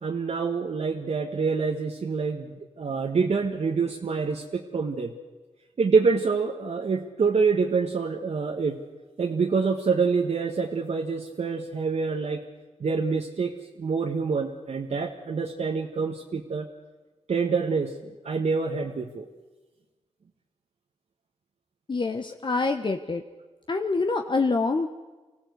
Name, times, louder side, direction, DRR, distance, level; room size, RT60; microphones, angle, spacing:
voice 1, 0.0-5.1 5.8-8.8 9.2-12.4 12.8-16.7 17.3-17.9 18.2-19.2, right 5 dB, 65° right, 1 dB, 1.4 m, -26 dB
voice 2, 21.9-23.2 23.7-24.9, left 3 dB, 40° left, 5 dB, 1.2 m, -26 dB
25.0 x 16.0 x 8.1 m, 1.3 s
cardioid pair, 75°, 12 cm